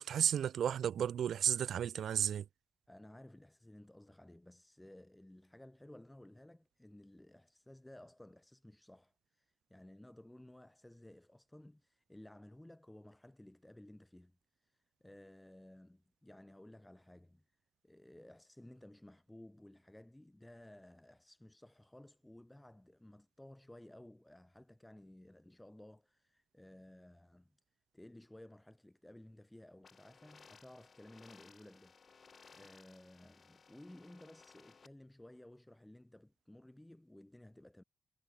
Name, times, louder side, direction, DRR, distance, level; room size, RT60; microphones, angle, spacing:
voice 1, 0.0-2.4, right 9 dB, 80° right, 0.4 m, -33 dB
voice 2, 2.9-17.5 17.8-27.6 27.9-31.9 32.5-37.8, left 1 dB, 10° left, 7.1 m, -57 dB
sound 1, 29.8-34.9, left 5 dB, 45° left, 7.6 m, -61 dB
wide cardioid pair, 120°, 0 cm